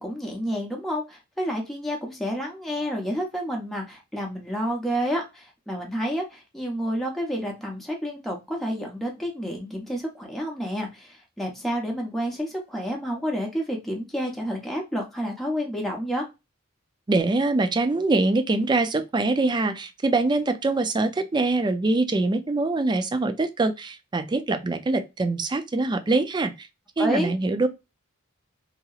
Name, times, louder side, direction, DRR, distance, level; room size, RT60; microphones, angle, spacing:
voice 1, 0.0-16.3 27.0-27.3, equal, ahead, 0.8 m, -29 dB
voice 2, 17.1-26.7 27.0-27.7, right 2 dB, 20° right, 0.4 m, -24 dB
2.9 x 2.8 x 2.3 m
head